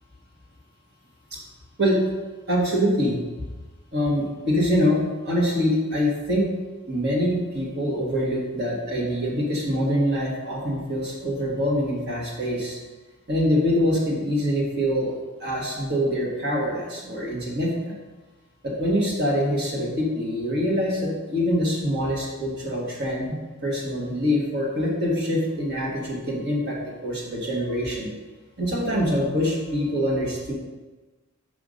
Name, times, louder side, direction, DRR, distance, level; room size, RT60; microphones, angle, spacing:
voice 1, 2.5-3.2 3.9-6.5 6.9-12.8 13.3-18.0 18.6-23.4 23.6-28.1 28.6-30.5, equal, 50° right, -3 dB, 1.6 m, -24 dB
5.8 x 5.2 x 5.3 m, 1.2 s
head